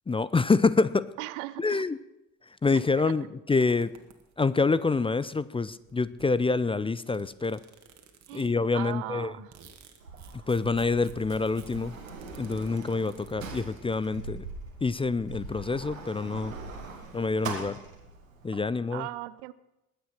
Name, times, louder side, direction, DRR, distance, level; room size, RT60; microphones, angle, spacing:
voice 1, 0.1-1.1 1.6-2.0 2.6-3.9 4.4-7.6 8.3-9.3 10.5-12.0 12.3-14.5 14.8-16.6 17.1-17.8 18.4-19.1, left 4 dB, 15° left, 17 dB, 0.5 m, -26 dB
voice 2, 1.2-1.8 3.0-3.1 8.3-9.5 18.9-19.5, right 18 dB, 70° right, 18 dB, 0.7 m, -38 dB
sound 1, 3.6-4.6 5.4-5.5 5.7-8.7 9.1-13.3, right 7 dB, 45° right, 2.1 m, -56 dB
Sliding door, 10.0-18.6, right 4 dB, 85° right, 1.7 m, -42 dB
20.0 x 8.3 x 6.0 m, 0.92 s
figure-of-eight pair, 50°, 39 cm